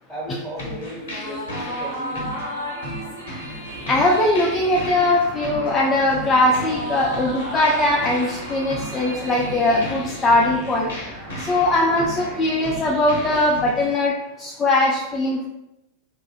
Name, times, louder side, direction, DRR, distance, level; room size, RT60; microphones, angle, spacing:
voice 1, 0.1-2.3, equal, 10° right, -8 dB, 1.2 m, -34 dB
sound 1, 0.6-13.9, left 1 dB, 60° left, 0.6 m, -36 dB
sound 2, 0.9-10.7, right 1 dB, 75° right, 0.7 m, -34 dB
sound 3, 3.7-13.5, right 1 dB, 35° right, 0.7 m, -38 dB
voice 2, 3.9-10.9 11.4-14.1 14.4-15.5, left 2 dB, 20° left, -3 dB, 0.3 m, -20 dB
2.4 x 2.3 x 2.3 m, 0.90 s
figure-of-eight pair, 90°, 0 cm